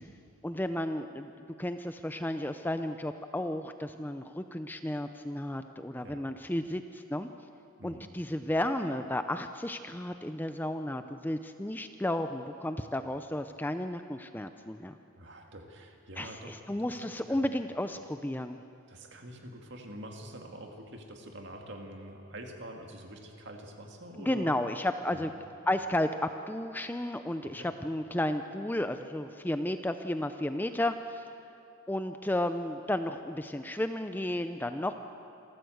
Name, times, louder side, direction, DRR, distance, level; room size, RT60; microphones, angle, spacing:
voice 1, 0.4-1.3 1.6-7.3 7.8-15.0 16.2-18.6 24.2-25.3 25.7-31.2 31.9-34.9, left 1 dB, 10° left, 8 dB, 0.5 m, -33 dB
voice 2, 7.8-8.1 15.2-17.4 18.9-24.6 25.1-25.3 27.4-27.7, right 1 dB, 55° right, 3 dB, 2.3 m, -46 dB
27.0 x 14.0 x 7.9 m, 2.7 s
head